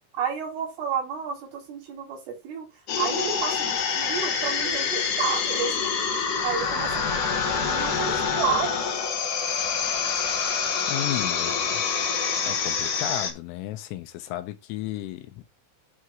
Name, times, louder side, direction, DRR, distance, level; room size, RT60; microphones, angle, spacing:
voice 1, 0.1-2.7 3.0-5.9 6.4-7.0 7.6-8.7, right 6 dB, 75° right, 6.1 m, -30 dB
sound 1, 2.9-13.3, left 6 dB, 60° left, 2.3 m, -26 dB
voice 2, 10.9-11.9 12.5-15.5, left 13 dB, 85° left, 3.6 m, -34 dB
11.0 x 3.8 x 4.6 m
omnidirectional pair, 5.8 m